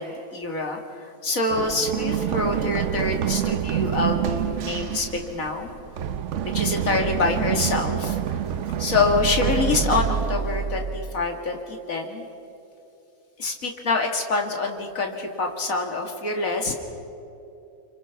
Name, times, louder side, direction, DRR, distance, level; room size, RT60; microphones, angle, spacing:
voice 1, 0.0-5.7 6.5-8.4 8.8-12.3 13.4-16.8, left 3 dB, 50° left, 2 dB, 2.6 m, -26 dB
Run, 1.5-11.2, right 9 dB, 60° right, 0.8 m, -27 dB
30.0 x 24.5 x 5.9 m, 2.9 s
omnidirectional pair, 1.8 m